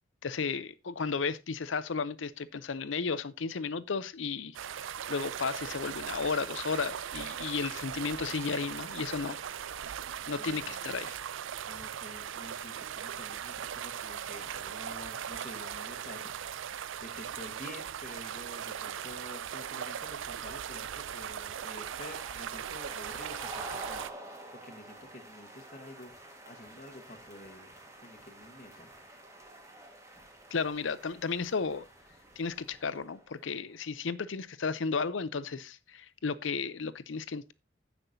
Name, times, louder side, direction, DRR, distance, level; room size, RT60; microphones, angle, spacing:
voice 1, 0.2-9.4 10.3-11.2 30.5-31.8 32.4-37.5, left 5 dB, 85° left, 0.6 m, -34 dB
sound 1, 4.5-24.1, right 9 dB, 90° right, 0.4 m, -39 dB
voice 2, 10.4-10.9 11.7-16.3 17.0-24.3 24.6-27.7 28.0-28.9, left 1 dB, 40° left, 1.4 m, -49 dB
sound 2, 18.0-33.6, right 1 dB, 15° right, 1.7 m, -50 dB
16.0 x 5.9 x 2.7 m
head